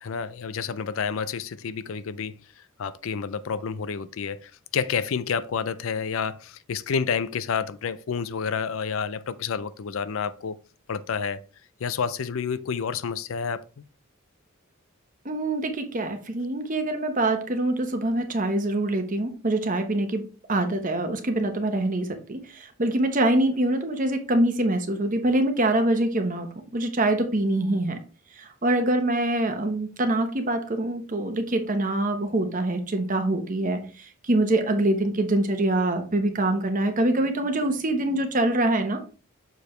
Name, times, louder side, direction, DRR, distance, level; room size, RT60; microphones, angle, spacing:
voice 1, 0.0-2.4 2.8-10.6 10.9-11.4 11.8-13.8, left 6 dB, 70° left, 0.4 m, -29 dB
voice 2, 15.2-20.2 20.5-28.0 28.3-39.0, right 1 dB, 40° right, 1.0 m, -24 dB
6.9 x 4.8 x 3.2 m
head